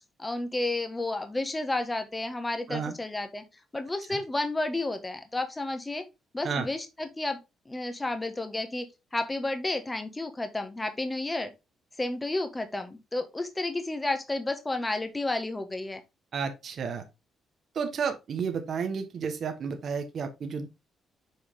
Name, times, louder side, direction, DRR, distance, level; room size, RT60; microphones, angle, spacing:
voice 1, 0.2-3.4 3.7-6.0 6.3-7.4 7.6-8.9 9.1-11.5 12.0-16.0, left 2 dB, 15° left, 1.6 m, -31 dB
voice 2, 16.3-17.0 17.7-20.7, right 6 dB, 55° right, 1.4 m, -31 dB
7.9 x 4.7 x 3.7 m
cardioid pair, 90°, 0 cm